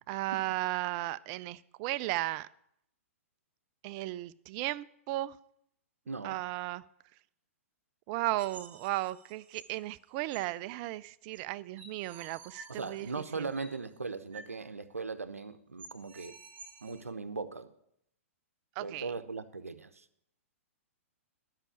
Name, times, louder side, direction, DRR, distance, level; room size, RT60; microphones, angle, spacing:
voice 1, 0.1-2.5 3.8-5.4 6.2-6.8 8.1-13.5 18.8-19.1, right 17 dB, 35° right, 17 dB, 0.4 m, -35 dB
voice 2, 6.1-6.4 12.7-16.3 16.8-17.7 18.8-20.1, right 4 dB, 85° right, 10 dB, 0.7 m, -39 dB
sound 1, 8.4-9.8 10.3-10.4 11.3-11.4 11.8-13.8 14.3-14.5 14.8-14.9 15.3-15.4 15.8-17.0, right 5 dB, 20° right, 2.3 m, -51 dB
11.5 x 5.8 x 8.4 m, 0.74 s
figure-of-eight pair, 110°, 8 cm